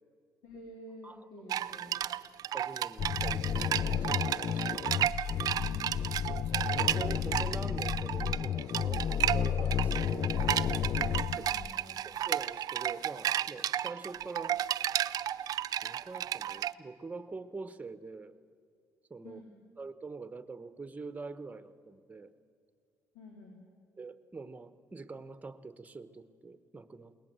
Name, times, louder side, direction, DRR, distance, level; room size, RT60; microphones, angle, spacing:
voice 1, 0.4-2.0 4.7-5.1 5.5-6.3 10.9-12.0 19.2-19.5 23.1-23.6, left 1 dB, 85° left, 0 dB, 3.3 m, -51 dB
sound 1, 1.5-16.7, right 11 dB, 60° right, 0.5 m, -33 dB
voice 2, 2.5-4.9 6.3-9.0 9.3-10.3 11.4-11.5 12.0-14.7 15.4-15.5 15.8-18.4 19.1-19.4 19.8-22.3 24.0-27.2, right 3 dB, 20° right, 12 dB, 1.1 m, -45 dB
sound 2, 3.0-11.8, left 9 dB, 50° left, 0.4 m, -32 dB
21.5 x 18.0 x 7.7 m, 2.3 s
cardioid pair, 85°, 7 cm